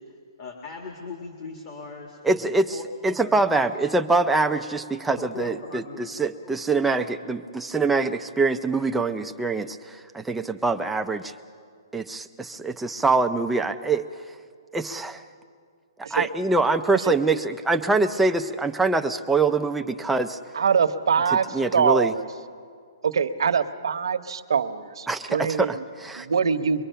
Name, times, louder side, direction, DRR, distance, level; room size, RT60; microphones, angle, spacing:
voice 1, 0.4-3.5 5.2-6.1 6.4-6.5, left 4 dB, 30° left, 2 dB, 1.9 m, -39 dB
voice 2, 2.2-2.8 3.0-11.3 11.9-14.0 14.7-15.2 16.1-20.4 21.3-22.1 25.1-26.3, right 3 dB, 5° right, 6 dB, 0.5 m, -24 dB
voice 3, 20.5-22.2 23.0-25.8 26.1-26.8, right 6 dB, 75° right, 8 dB, 1.0 m, -23 dB
23.5 x 23.0 x 5.7 m, 2.2 s
hypercardioid pair, 165°, 2 cm